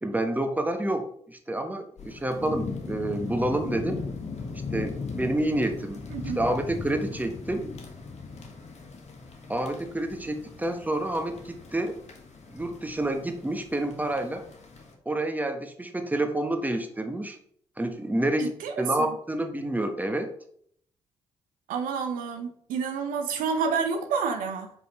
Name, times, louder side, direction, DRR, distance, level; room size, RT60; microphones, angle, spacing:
voice 1, 0.0-4.0 4.7-6.0 6.3-7.7 9.5-12.0 12.5-14.5 15.0-17.4 17.8-20.3, right 1 dB, 10° right, 6 dB, 1.2 m, -28 dB
sound 1, 2.0-14.9, left 4 dB, 50° left, 1.5 m, -39 dB
voice 2, 6.1-6.4 18.4-19.1 21.7-24.7, right 5 dB, 70° right, 5 dB, 0.8 m, -29 dB
5.1 x 4.7 x 4.2 m, 0.65 s
hypercardioid pair, 45°, 14 cm